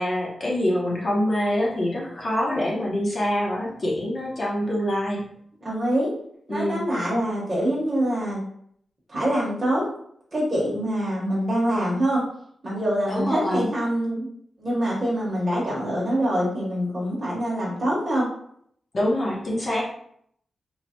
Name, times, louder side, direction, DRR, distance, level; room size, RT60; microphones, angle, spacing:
voice 1, 0.0-5.2 6.5-6.8 13.1-13.7 18.9-19.8, left 1 dB, 40° left, -4 dB, 0.7 m, -25 dB
voice 2, 5.6-6.1 6.5-8.4 9.1-9.9 10.3-12.2 12.6-14.3 14.6-18.3, equal, 25° right, -6 dB, 0.8 m, -25 dB
3.1 x 2.1 x 2.7 m, 0.67 s
wide cardioid pair, 160°, 0 cm